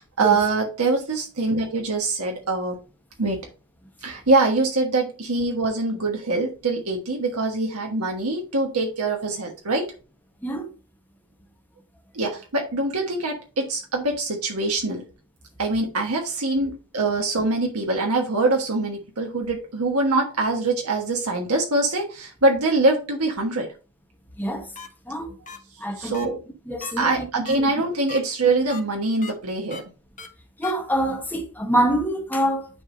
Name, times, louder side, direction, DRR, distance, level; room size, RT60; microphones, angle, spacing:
voice 1, 0.0-2.8 3.2-3.4 4.0-9.9 12.1-15.1 15.6-23.7 25.8-26.3 27.0-29.8, right 2 dB, 75° right, 1.4 m, -24 dB
sound 1, 24.7-24.9 25.5-25.6 26.1-26.2 26.8-26.9 27.4-27.6 28.1-28.2 28.7-28.8 29.2-29.3 29.7-29.8 30.2-30.3 30.6-30.7, left 6 dB, 35° left, 1.3 m, -37 dB
voice 2, 25.8-26.4 26.7-27.6 30.6-32.7, right 1 dB, 10° left, 1.2 m, -25 dB
9.9 x 3.4 x 4.0 m
head